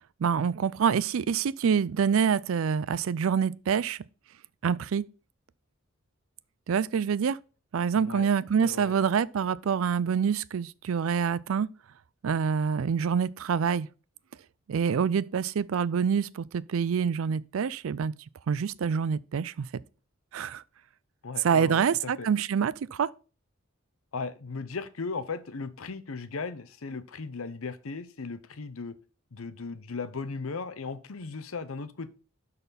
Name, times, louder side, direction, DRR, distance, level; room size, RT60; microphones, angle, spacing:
voice 1, 0.2-4.0 4.6-5.1 6.7-7.4 7.7-11.7 12.2-13.9 14.7-18.1 18.5-19.7 20.3-20.6 21.4-23.1, right 7 dB, 75° right, 0.4 m, -26 dB
voice 2, 7.9-8.3 8.6-8.9 21.2-21.8 22.2-22.3 24.1-28.9 29.3-32.1, left 4 dB, 85° left, 0.8 m, -37 dB
12.0 x 4.2 x 4.2 m
head